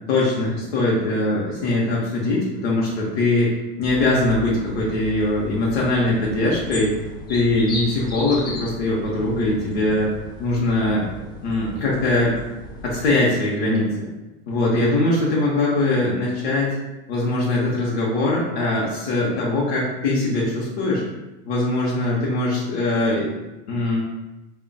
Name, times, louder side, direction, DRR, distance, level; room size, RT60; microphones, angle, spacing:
voice 1, 0.1-6.9 7.3-10.1 10.4-11.1 11.4-12.3 12.8-13.9 14.5-16.8 17.1-21.0 21.5-23.4 23.7-24.0, left 2 dB, 85° left, -5 dB, 0.9 m, -21 dB
sound 1, 3.8-13.2, left 1 dB, 15° left, 0.3 m, -36 dB
5.1 x 2.3 x 2.3 m, 1.0 s
supercardioid pair, 140°, 30 cm